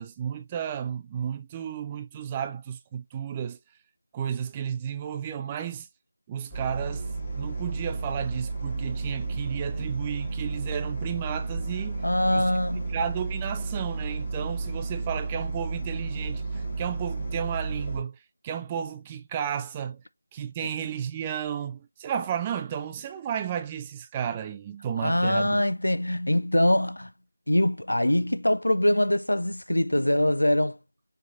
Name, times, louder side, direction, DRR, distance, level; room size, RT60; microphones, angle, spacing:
voice 1, 0.0-3.6 4.1-5.9 6.3-7.1 7.4-12.0 12.3-12.6 12.9-18.2 18.4-20.0 20.3-25.7, right 8 dB, 15° right, 0.3 m, -33 dB
sound 1, 6.5-18.0, right 3 dB, 20° left, 1.5 m, -32 dB
voice 2, 12.0-13.0 25.0-27.1 27.5-30.8, left 1 dB, 70° left, 0.5 m, -23 dB
4.4 x 3.5 x 2.5 m
figure-of-eight pair, 165°, 0 cm